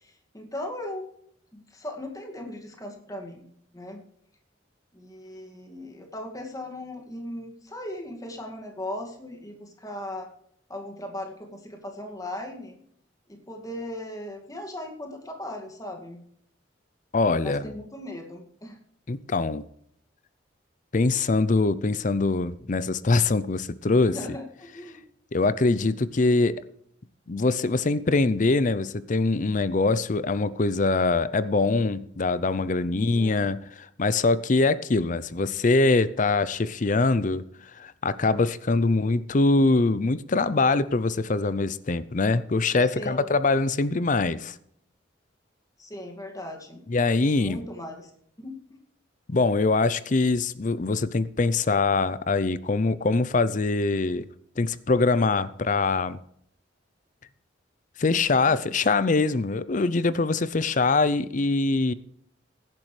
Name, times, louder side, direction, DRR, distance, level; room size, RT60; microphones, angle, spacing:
voice 1, 0.0-1.1 1.5-3.5 3.7-4.0 4.9-10.3 10.7-12.8 13.3-16.2 17.4-18.8 24.1-25.0 32.9-33.5 38.8-39.2 42.8-43.4 45.8-46.8 47.4-48.1 48.4-48.8 58.5-58.6, left 1 dB, 20° left, 2.2 m, -38 dB
voice 2, 17.1-17.7 19.1-19.6 20.9-24.2 25.3-26.6 27.3-37.4 37.8-44.6 46.9-47.6 49.3-54.3 54.6-56.2 58.0-61.9, left 3 dB, 40° left, 0.5 m, -23 dB
17.0 x 10.5 x 3.3 m
head